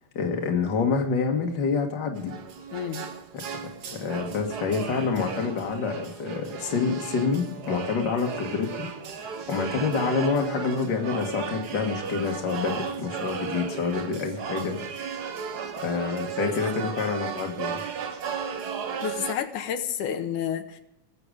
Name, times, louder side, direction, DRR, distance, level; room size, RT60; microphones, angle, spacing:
voice 1, 0.1-2.3 3.9-8.9 9.1-14.7 15.8-17.8, left 5 dB, 40° left, 2 dB, 2.1 m, -27 dB
sound 1, 2.1-19.3, right 6 dB, 80° right, 0.9 m, -35 dB
voice 2, 2.7-3.1 16.5-16.6 19.0-20.8, left 8 dB, 85° left, 7 dB, 2.6 m, -30 dB
20.0 x 7.9 x 5.0 m, 0.87 s
omnidirectional pair, 3.4 m